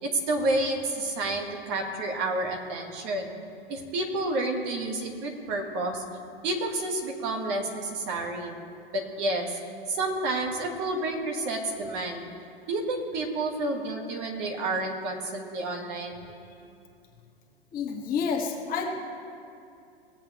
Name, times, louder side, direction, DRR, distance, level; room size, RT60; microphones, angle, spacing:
voice 1, 0.0-3.3 3.7-6.0 6.4-8.6 8.9-9.6 9.9-12.2 12.7-16.3, right 2 dB, 40° right, 2 dB, 1.6 m, -30 dB
voice 2, 17.7-19.0, left 5 dB, 30° left, 0 dB, 1.9 m, -30 dB
20.5 x 7.9 x 3.0 m, 2.5 s
figure-of-eight pair, 105°, 30 cm